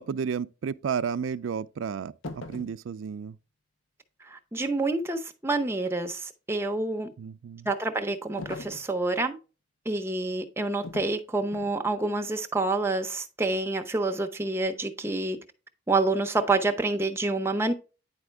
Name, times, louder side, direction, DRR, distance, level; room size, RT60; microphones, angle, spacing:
voice 1, 0.0-3.4 7.2-7.7, right 6 dB, 85° right, 0.4 m, -32 dB
sound 1, 2.2-2.8 8.4-8.9 10.8-11.2 11.5-11.8, left 2 dB, 90° left, 0.7 m, -40 dB
voice 2, 4.3-7.1 7.6-9.4 9.9-15.4 15.9-17.7, right 2 dB, 15° right, 0.7 m, -28 dB
9.7 x 4.2 x 3.4 m
head